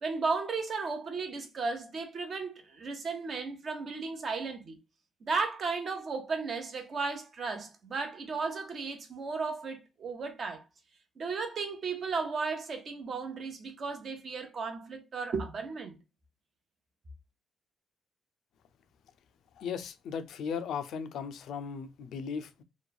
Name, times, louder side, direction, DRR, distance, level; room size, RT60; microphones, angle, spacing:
voice 1, 0.0-4.8 5.2-10.6 11.2-15.9, right 4 dB, 50° right, 0.8 m, -35 dB
voice 2, 19.6-22.6, left 6 dB, 75° left, 0.3 m, -37 dB
3.0 x 2.2 x 2.2 m
cardioid pair, 90°, 0 cm